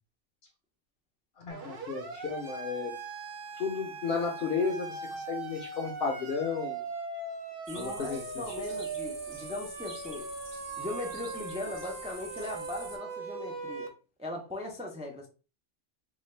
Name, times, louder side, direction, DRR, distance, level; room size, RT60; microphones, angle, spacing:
voice 1, 1.4-2.9 3.6-6.8 7.7-8.6, left 5 dB, 60° left, 0.8 m, -33 dB
Siren, 1.5-13.9, right 4 dB, 55° right, 0.9 m, -40 dB
voice 2, 7.7-10.3 10.8-13.9 14.2-15.3, left 1 dB, 10° right, 0.3 m, -39 dB
sound 1, 7.7-13.0, right 2 dB, 25° right, 0.7 m, -47 dB
3.9 x 2.2 x 3.2 m
omnidirectional pair, 1.2 m